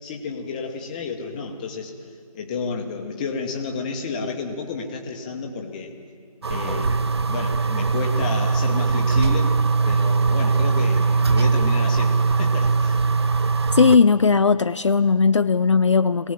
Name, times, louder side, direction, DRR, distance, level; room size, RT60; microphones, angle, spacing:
voice 1, 0.0-1.9 2.3-5.9 6.5-9.5 9.8-13.0, left 4 dB, 15° left, 2 dB, 1.1 m, -31 dB
sound 1, 6.4-14.0, right 4 dB, 45° right, 0.7 m, -20 dB
voice 2, 13.7-16.3, left 5 dB, 55° left, 11 dB, 0.5 m, -17 dB
21.0 x 17.5 x 7.4 m, 2.3 s
figure-of-eight pair, 160°, 19 cm